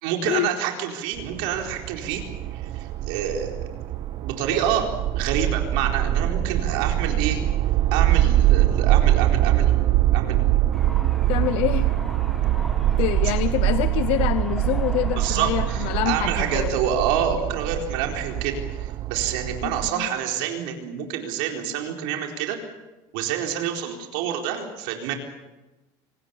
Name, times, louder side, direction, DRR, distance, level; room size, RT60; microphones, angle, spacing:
voice 1, 0.0-2.2 2.5-3.5 4.2-4.9 5.1-7.4 7.9-9.9 10.1-10.6 15.2-22.6 23.1-25.1, right 9 dB, 70° right, 2 dB, 4.3 m, -27 dB
sound 1, 1.2-19.9, right 13 dB, 40° right, 0.8 m, -23 dB
sound 2, 10.7-16.7, left 1 dB, ahead, 1.4 m, -40 dB
voice 2, 11.3-11.9 13.0-16.7 19.6-20.1, left 17 dB, 60° left, 14 dB, 0.7 m, -26 dB
26.0 x 19.0 x 7.2 m, 1.1 s
cardioid pair, 155°, 11 cm